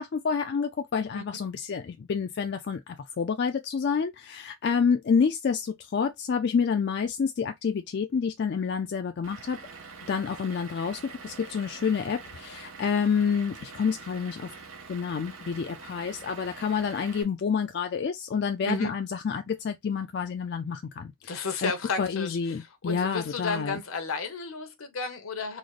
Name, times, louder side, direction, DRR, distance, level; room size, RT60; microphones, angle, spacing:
voice 1, 0.0-9.6 10.1-14.5 14.9-21.7 22.0-23.8, left 6 dB, 50° left, 0.3 m, -28 dB
Vehicle / Engine, 9.2-17.2, right 5 dB, 80° right, 1.2 m, -45 dB
voice 2, 21.3-22.4 22.8-25.6, left 3 dB, 80° left, 0.9 m, -32 dB
3.9 x 2.1 x 3.1 m
head